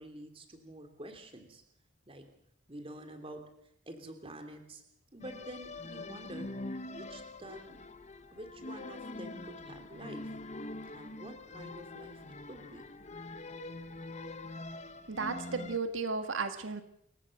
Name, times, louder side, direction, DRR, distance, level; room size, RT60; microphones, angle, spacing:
voice 1, 0.0-1.6 2.1-2.2 2.7-3.4 3.9-4.8 5.1-6.5 6.9-7.8 8.3-10.3 10.9-12.9, right 1 dB, 30° right, 6 dB, 3.1 m, -48 dB
sound 1, 5.2-15.8, left 2 dB, 35° left, 1.1 m, -44 dB
voice 2, 15.1-16.8, right 4 dB, 85° right, 8 dB, 1.7 m, -34 dB
28.5 x 15.5 x 6.6 m, 0.72 s
head